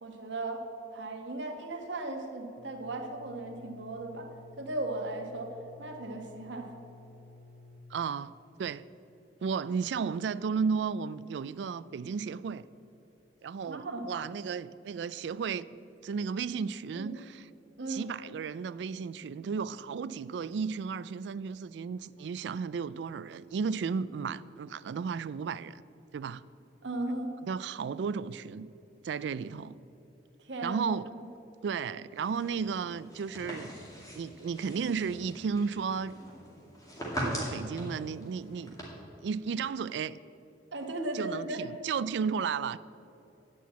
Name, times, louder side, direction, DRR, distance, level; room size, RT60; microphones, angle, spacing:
voice 1, 0.0-0.6 0.9-4.3 4.6-5.5 5.8-6.7 13.7-14.1 16.9-17.1 17.8-18.0 26.8-27.3 30.4-30.9 40.7-41.6, right 2 dB, 85° right, 1.3 m, -36 dB
sound 1, 2.6-7.8, left 3 dB, 40° right, 1.1 m, -54 dB
voice 2, 7.9-8.3 8.6-8.8 9.4-12.6 13.4-15.7 16.0-17.5 17.9-25.8 26.1-26.4 27.5-28.7 29.0-29.8 30.6-31.0 31.6-33.7 34.1-36.1 37.2-38.7 39.2-40.2 41.1-42.8, right 6 dB, 70° right, 0.3 m, -34 dB
sound 2, 32.1-38.8, equal, 20° left, 2.3 m, -41 dB
9.2 x 5.9 x 8.4 m
head